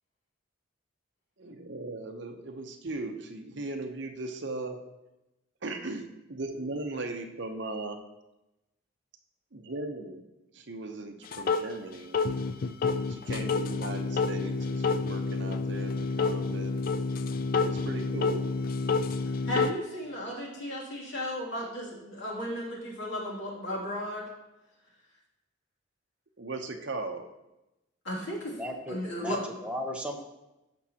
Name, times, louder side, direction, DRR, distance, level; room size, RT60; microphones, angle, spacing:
voice 1, 1.4-4.8 5.6-8.0 9.5-10.2 10.5-12.3 13.1-16.8 17.6-18.5 26.4-27.3, right 2 dB, 55° right, 5 dB, 0.8 m, -38 dB
sound 1, 11.3-11.7 12.1-19.7, left 4 dB, 45° left, 0.4 m, -29 dB
voice 2, 19.5-24.2 28.0-28.6 28.9-29.4, equal, 65° left, -4 dB, 2.6 m, -35 dB
voice 3, 28.5-30.2, equal, 5° right, 1 dB, 0.8 m, -36 dB
14.5 x 6.1 x 2.9 m, 0.96 s
head